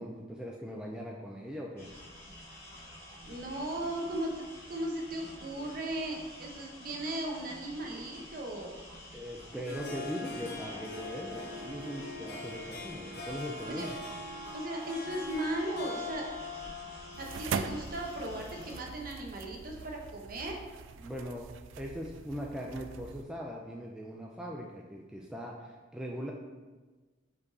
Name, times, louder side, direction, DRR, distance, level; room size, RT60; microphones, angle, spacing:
voice 1, 0.0-1.9 9.1-13.9 21.0-21.5 21.8-26.3, equal, 5° right, -2 dB, 0.4 m, -40 dB
sound 1, 1.8-18.8, left 1 dB, 15° left, 1.9 m, -50 dB
voice 2, 3.2-8.8 13.7-13.9 14.5-16.3 17.2-20.6, right 1 dB, 45° right, 0 dB, 1.0 m, -37 dB
Harp, 9.5-18.2, left 2 dB, 50° left, 1.0 m, -42 dB
sound 2, 17.1-23.2, right 5 dB, 75° right, 0.3 m, -41 dB
5.3 x 4.5 x 4.1 m, 1.3 s
head